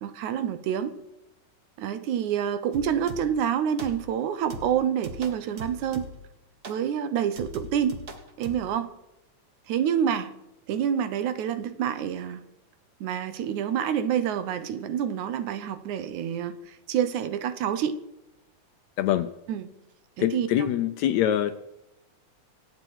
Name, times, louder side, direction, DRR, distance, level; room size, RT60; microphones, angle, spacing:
voice 1, 0.0-0.9 1.8-6.1 6.7-8.0 8.4-8.9 9.7-10.3 10.7-12.4 13.0-18.0 19.5-19.7 20.2-20.7, right 9 dB, 75° right, 11 dB, 2.2 m, -27 dB
sound 1, 2.7-3.5 3.8-4.2 4.5-6.3 6.6-6.9 7.4-8.7, right 2 dB, 45° right, 1.3 m, -40 dB
voice 2, 19.0-19.3 20.2-21.5, left 11 dB, 75° left, 10 dB, 1.7 m, -24 dB
25.0 x 8.7 x 4.7 m, 0.90 s
omnidirectional pair, 3.7 m